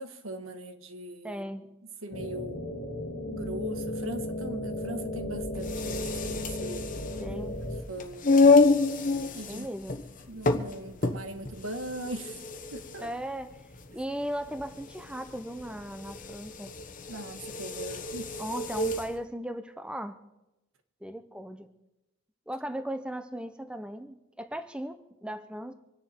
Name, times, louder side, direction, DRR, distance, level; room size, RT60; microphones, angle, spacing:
voice 1, 0.0-1.4 2.0-7.1 7.9-8.3 9.3-9.7 10.3-12.4 12.7-13.1 17.1-18.3, right 1 dB, 85° right, 1.4 m, -40 dB
voice 2, 1.2-1.6 7.2-7.6 9.5-10.0 13.0-13.6 13.9-16.7 18.4-20.2 21.0-21.7 22.5-25.7, equal, 5° right, 0.6 m, -37 dB
sound 1, 2.1-7.8, left 1 dB, 75° left, 1.4 m, -35 dB
sound 2, 5.6-19.1, left 3 dB, 40° left, 1.1 m, -28 dB
26.0 x 10.0 x 4.4 m
head